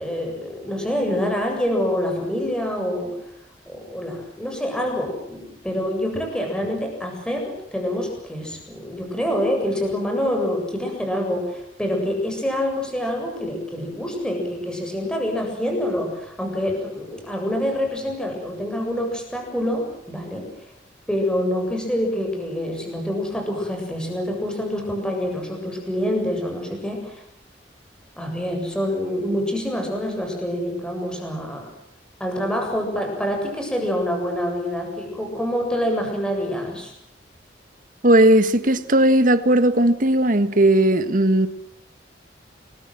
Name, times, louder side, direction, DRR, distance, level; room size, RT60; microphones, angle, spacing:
voice 1, 0.0-3.1 3.7-20.5 21.1-27.2 28.2-31.7 32.2-36.9, equal, 5° left, 7.7 m, -26 dB
voice 2, 38.0-41.5, right 1 dB, 50° right, 1.7 m, -17 dB
30.0 x 22.5 x 7.8 m
head